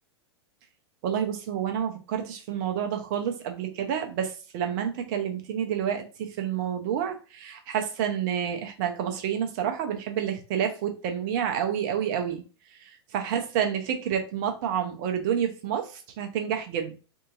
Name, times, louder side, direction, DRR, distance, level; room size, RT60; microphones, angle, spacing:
voice 1, 1.0-12.4 13.1-16.9, right 8 dB, 45° right, 0.7 m, -29 dB
2.7 x 2.7 x 2.4 m
figure-of-eight pair, 100°, 14 cm